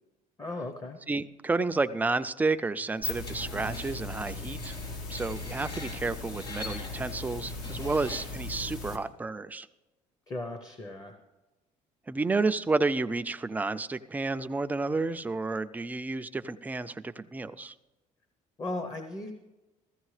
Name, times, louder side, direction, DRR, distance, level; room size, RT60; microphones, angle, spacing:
voice 1, 0.4-1.0 10.3-11.2 18.6-19.3, left 2 dB, 25° left, 7 dB, 0.8 m, -36 dB
voice 2, 1.1-4.7 5.1-9.7 12.1-17.7, right 3 dB, 10° right, 10 dB, 0.3 m, -31 dB
sound 1, 2.8-9.0, left 3 dB, 80° left, 1.7 m, -38 dB
Screech, 3.2-8.5, left 2 dB, 45° left, 2.9 m, -45 dB
15.0 x 14.5 x 3.2 m, 1.1 s
cardioid pair, 115°, 14 cm